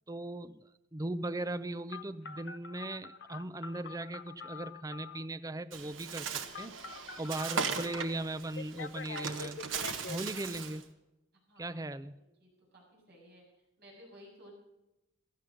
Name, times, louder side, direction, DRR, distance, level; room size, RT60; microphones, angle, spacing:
voice 1, 0.1-6.3 6.6-6.7 7.2-9.6 10.1-10.8 11.6-12.2, right 2 dB, 20° right, 13 dB, 0.5 m, -38 dB
Telephone, 1.9-5.3 6.5-8.0 8.6-10.2, left 5 dB, 60° left, 0.7 m, -45 dB
Bird, 5.7-10.8, right 5 dB, 75° right, 1.4 m, -38 dB
voice 2, 11.5-11.8 12.2-13.4 13.8-14.6, equal, 55° right, -2 dB, 7.1 m, -56 dB
16.0 x 12.0 x 5.1 m, 0.95 s
head